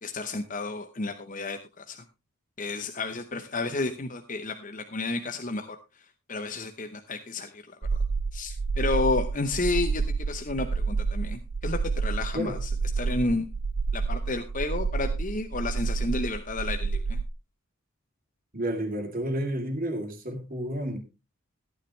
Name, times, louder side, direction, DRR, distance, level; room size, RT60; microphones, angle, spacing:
voice 1, 0.0-2.0 2.6-5.8 6.3-7.8 8.3-12.7 13.0-13.5 13.9-17.2, left 3 dB, 35° left, 8 dB, 0.8 m, -31 dB
sound 1, 7.8-17.3, right 4 dB, 70° right, 0.6 m, -29 dB
voice 2, 18.5-21.0, right 1 dB, 40° right, 4 dB, 2.8 m, -31 dB
14.5 x 9.9 x 3.2 m, 0.27 s
head